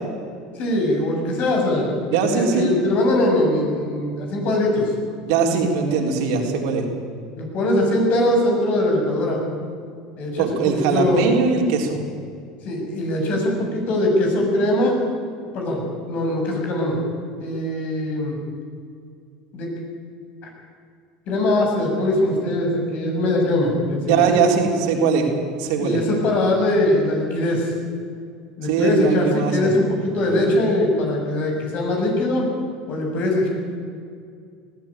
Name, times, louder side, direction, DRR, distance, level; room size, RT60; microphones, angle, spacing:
voice 1, 0.5-4.9 7.3-9.4 10.2-11.2 12.6-15.0 15.5-17.0 17.4-18.4 19.5-19.7 21.3-24.2 25.8-27.7 28.6-32.4 32.9-33.5, left 1 dB, 55° left, 1 dB, 7.6 m, -21 dB
voice 2, 2.1-2.7 5.2-6.9 10.4-12.0 24.1-25.3 25.6-26.0 28.6-29.7, right 5 dB, 70° right, 2 dB, 3.8 m, -20 dB
19.5 x 15.0 x 9.0 m, 2.3 s
supercardioid pair, 95°, 3 cm